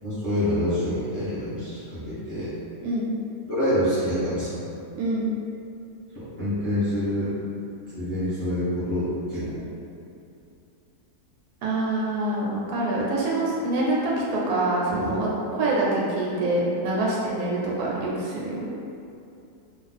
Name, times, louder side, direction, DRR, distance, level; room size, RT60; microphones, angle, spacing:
voice 1, 0.0-2.5 3.5-4.6 6.1-7.3 7.9-9.5 14.9-15.1, equal, 10° left, -13 dB, 0.9 m, -26 dB
voice 2, 4.9-5.3 11.6-18.7, right 2 dB, 75° right, -5 dB, 1.1 m, -25 dB
2.5 x 2.4 x 4.0 m, 2.6 s
omnidirectional pair, 1.7 m